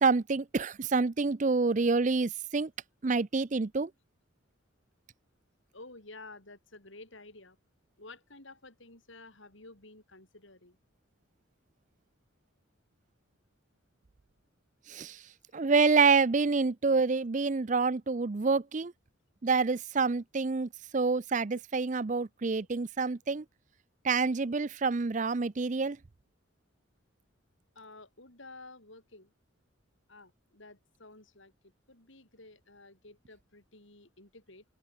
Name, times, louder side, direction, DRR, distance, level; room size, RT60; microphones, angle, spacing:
voice 1, 0.0-2.7 3.0-3.9 14.9-15.2 15.5-18.9 19.4-23.4 24.0-26.0, right 4 dB, 35° right, 0.5 m, -27 dB
voice 2, 5.7-7.6 8.0-10.8 17.9-18.0 21.5-21.6 27.8-29.3 30.1-34.6, left 2 dB, 65° left, 5.6 m, -52 dB
open air
head